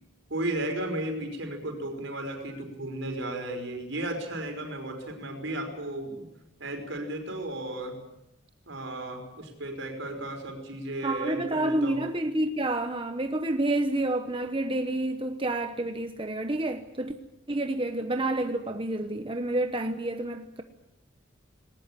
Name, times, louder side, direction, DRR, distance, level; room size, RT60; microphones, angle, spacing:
voice 1, 0.3-6.2 6.6-8.0 8.7-12.0, right 1 dB, 70° right, 5.3 m, -34 dB
voice 2, 11.0-17.1 17.5-20.6, right 1 dB, 25° right, 1.0 m, -29 dB
19.5 x 19.5 x 10.0 m
head